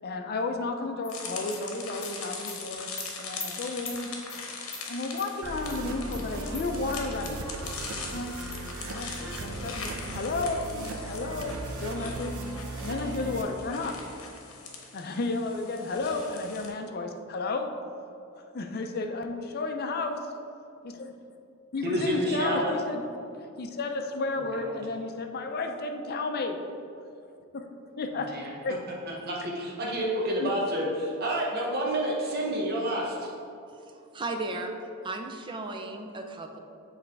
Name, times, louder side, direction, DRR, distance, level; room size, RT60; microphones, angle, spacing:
voice 1, 0.0-2.9 3.2-4.2 4.9-7.5 8.1-8.4 8.8-12.5 12.8-14.0 14.9-17.8 18.4-20.3 20.8-21.1 21.7-23.0 23.6-26.6 27.5-27.6 28.0-28.3 28.6-28.8 30.4-30.5, left 3 dB, 45° left, 4 dB, 0.5 m, -32 dB
Animal, 1.0-1.1 1.5-1.6 2.0-2.1 2.5-2.6 3.0-3.1 3.4-3.5 3.9-4.0 4.3-4.4 4.7-4.8 5.2-5.3 5.7-5.8 6.1-6.2 6.5-6.7 6.9-7.3 7.7-7.8 8.1-8.2 8.5-8.6 9.0-9.1 9.4-9.5 9.8-9.9, left 3 dB, 10° left, 0.8 m, -41 dB
sound 1, 1.1-16.7, left 4 dB, 70° left, 0.9 m, -41 dB
sound 2, 5.4-13.4, right 2 dB, 90° right, 0.6 m, -37 dB
voice 2, 21.8-22.7 24.4-24.7 28.3-28.5 29.2-33.3, right 1 dB, 45° right, -3 dB, 0.8 m, -29 dB
voice 3, 33.7-34.7 35.0-36.6, right 2 dB, 20° right, 4 dB, 0.4 m, -35 dB
7.3 x 3.2 x 4.6 m, 2.6 s
head